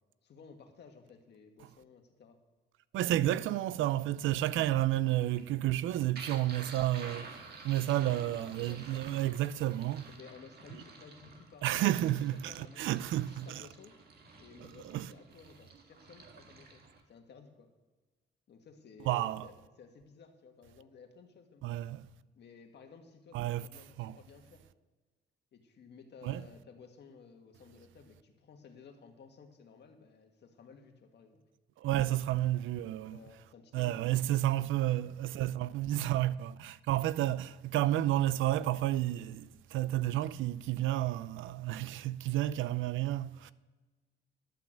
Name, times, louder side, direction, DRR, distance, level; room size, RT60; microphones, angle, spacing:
voice 1, 0.2-2.4 3.4-3.5 4.5-4.7 7.8-9.2 10.1-11.9 12.3-14.0 14.4-17.7 18.5-21.8 22.3-24.6 25.5-31.4 33.0-34.6, left 5 dB, 60° left, 1.7 m, -55 dB
voice 2, 2.9-7.3 7.6-10.1 11.6-13.6 14.6-15.1 19.1-19.5 21.6-22.0 23.3-23.7 24.0-24.2 26.2-26.4 31.8-33.2 33.7-43.5, right 14 dB, 80° right, 0.5 m, -31 dB
sound 1, 5.2-17.0, right 4 dB, 55° right, 1.8 m, -51 dB
11.5 x 5.8 x 7.4 m
cardioid pair, 90°, 20 cm